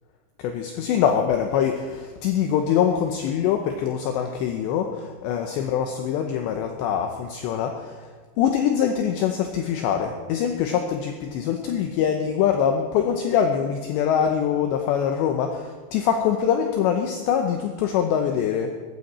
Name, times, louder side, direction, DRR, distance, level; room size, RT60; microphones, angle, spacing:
voice 1, 0.4-8.1 8.4-18.7, left 8 dB, 80° left, 4 dB, 2.7 m, -24 dB
18.0 x 14.5 x 4.3 m, 1.4 s
omnidirectional pair, 5.8 m